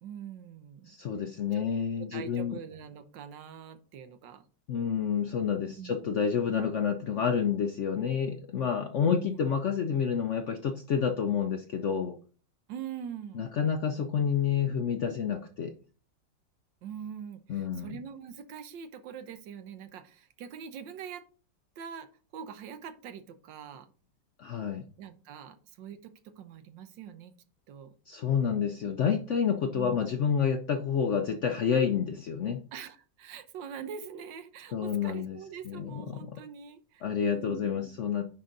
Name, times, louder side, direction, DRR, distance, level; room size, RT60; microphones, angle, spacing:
voice 1, 0.0-1.0 1.5-1.6 2.0-4.4 5.8-6.0 9.0-9.4 12.7-13.5 16.8-21.2 21.8-23.9 25.0-27.3 27.7-27.9 29.7-30.0 32.7-37.9, right 8 dB, 85° right, 10 dB, 1.5 m, -43 dB
voice 2, 0.9-2.5 4.7-12.2 13.3-15.7 17.5-18.0 24.4-24.8 28.1-32.6 34.7-35.4 35.7-36.4 37.0-38.2, left 7 dB, 70° left, 6 dB, 0.7 m, -29 dB
9.9 x 3.8 x 3.9 m, 0.39 s
omnidirectional pair, 1.9 m